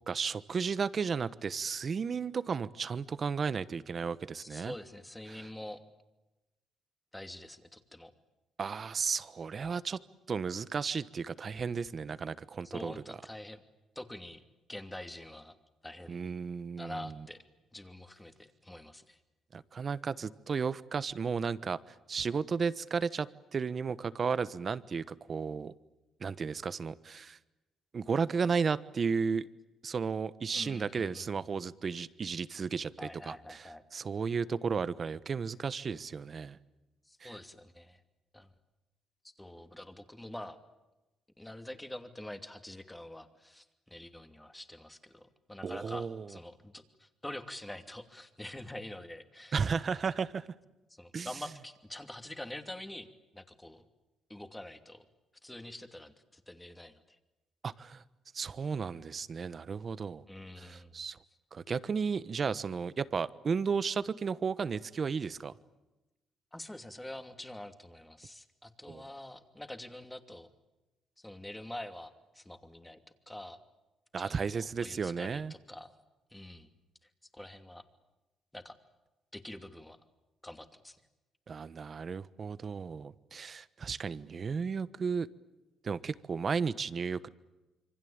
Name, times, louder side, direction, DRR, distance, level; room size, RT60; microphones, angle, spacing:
voice 1, 0.1-4.7 5.3-5.4 8.6-10.0 10.3-12.9 16.1-17.1 19.5-21.8 22.1-25.7 26.2-27.4 27.9-29.5 29.8-36.6 37.2-37.4 45.6-46.4 49.5-50.5 51.1-51.3 57.6-58.0 58.3-60.2 60.6-61.2 61.5-65.5 68.9-69.0 74.1-75.5 81.5-85.3 85.8-87.3, right 5 dB, 45° right, 16 dB, 1.2 m, -34 dB
voice 2, 4.3-5.8 7.1-8.1 12.6-13.6 13.9-14.4 14.7-15.5 15.8-16.2 16.8-17.4 17.7-19.2 30.5-31.5 33.0-33.8 37.1-38.0 38.3-38.5 39.4-40.6 41.4-49.6 50.9-53.1 53.3-53.9 54.3-55.1 55.4-57.2 60.3-61.0 66.5-70.5 71.2-73.6 74.2-75.9 76.3-76.7 77.3-77.8 78.5-78.8 79.3-80.0 80.4-81.0, left 1 dB, 10° left, 8 dB, 2.7 m, -46 dB
27.0 x 24.5 x 8.8 m, 1.0 s
cardioid pair, 90°, 0 cm